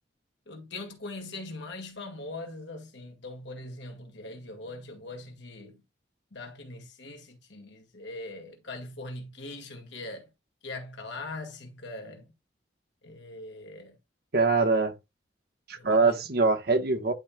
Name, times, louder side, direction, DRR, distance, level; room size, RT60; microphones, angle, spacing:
voice 1, 0.5-5.8 6.3-10.3 10.6-12.3 13.0-14.0 15.7-16.3, left 2 dB, 70° left, 2.0 m, -41 dB
voice 2, 14.3-14.9 15.7-17.1, right 3 dB, 55° right, 1.2 m, -23 dB
11.0 x 4.4 x 2.2 m
head